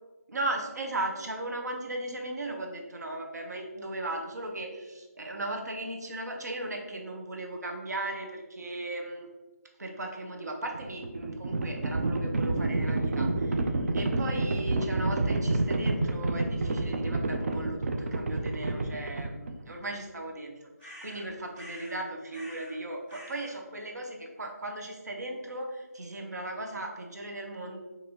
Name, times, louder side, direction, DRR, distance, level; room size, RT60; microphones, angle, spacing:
voice 1, 0.3-9.3 9.8-13.7 13.9-27.8, right 2 dB, 75° right, 2 dB, 0.8 m, -37 dB
Livestock farm animals working animals, 10.6-19.7, right 2 dB, 50° right, 0.3 m, -29 dB
sound 1, 20.8-22.0 22.3-22.8 23.1-23.6, equal, 5° right, 0.8 m, -47 dB
4.2 x 2.6 x 2.8 m, 1.2 s
figure-of-eight pair, 170°, 9 cm